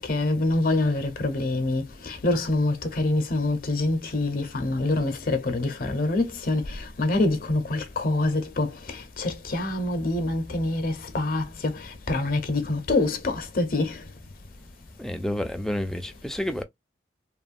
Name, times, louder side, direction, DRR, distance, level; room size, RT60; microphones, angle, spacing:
voice 1, 0.1-8.7 9.2-11.7 12.1-14.0, left 2 dB, 50° left, 0.7 m, -25 dB
voice 2, 15.0-16.6, left 1 dB, 5° left, 0.4 m, -29 dB
3.0 x 2.2 x 2.5 m
head